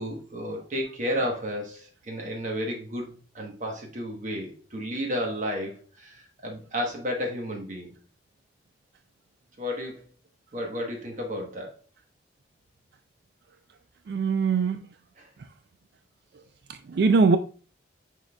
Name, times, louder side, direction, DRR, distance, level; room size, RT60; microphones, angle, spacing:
voice 1, 0.0-6.1 6.4-7.9 9.6-10.0 10.5-11.7 15.2-15.3, equal, 45° right, 1.1 m, -32 dB
voice 2, 14.1-14.9 16.7-17.4, right 4 dB, 65° right, 0.3 m, -22 dB
6.3 x 3.7 x 2.2 m
head